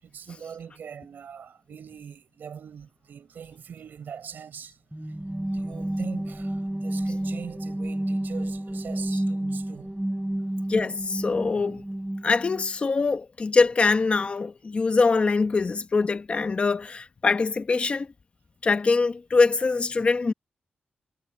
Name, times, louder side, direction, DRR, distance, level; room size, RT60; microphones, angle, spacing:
voice 1, 0.0-5.2 5.5-9.9, right 7 dB, 80° right, 7.0 m, -42 dB
sound 1, 4.9-12.7, right 1 dB, 10° right, 3.3 m, -30 dB
voice 2, 10.7-11.8 12.2-18.1 18.6-20.3, left 4 dB, 40° left, 1.0 m, -23 dB
wide cardioid pair, 115°, 3 cm